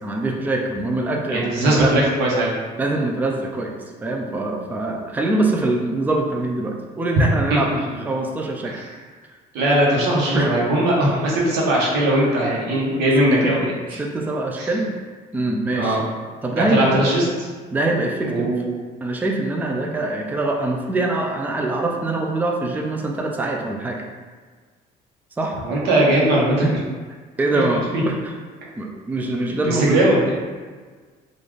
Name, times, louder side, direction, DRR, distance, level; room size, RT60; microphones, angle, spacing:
voice 1, 0.0-1.9 2.8-7.7 8.0-8.8 10.3-10.5 12.9-13.0 13.4-13.6 14.0-14.9 15.3-16.0 16.4-17.0 17.7-18.6 19.0-24.0 25.4-25.6 26.6-26.7 27.4-28.3 28.8-30.0, right 2 dB, 10° right, 0 dB, 0.4 m, -23 dB
voice 2, 1.3-2.5 7.5-7.6 8.6-8.9 9.5-14.0 14.6-14.7 15.7-16.0 16.6-17.5 18.2-18.8 25.6-26.6 27.5-27.6 29.5-30.4, right 1 dB, 90° right, -4 dB, 1.0 m, -19 dB
3.8 x 2.5 x 3.2 m, 1.5 s
cardioid pair, 110°, 17 cm